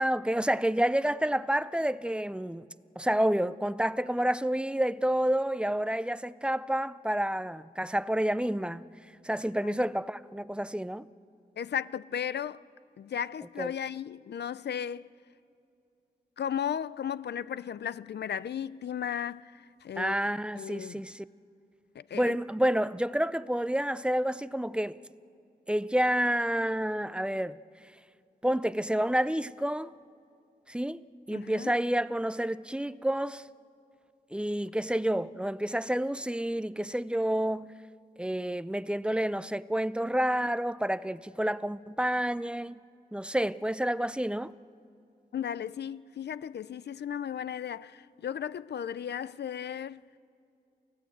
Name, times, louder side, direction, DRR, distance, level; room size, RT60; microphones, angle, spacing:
voice 1, 0.0-2.7 3.0-8.8 9.2-11.1 13.6-13.7 20.0-21.2 22.1-25.0 25.7-27.6 28.4-29.9 30.7-33.5 34.3-37.7 38.2-42.8 43.1-44.5, right 1 dB, 5° right, 0.5 m, -29 dB
voice 2, 11.6-12.6 13.0-15.1 16.4-20.2 20.6-21.1 21.9-22.4 31.3-31.7 45.3-50.0, left 9 dB, 80° left, 0.5 m, -35 dB
28.5 x 16.5 x 8.0 m
wide cardioid pair, 95°, 17 cm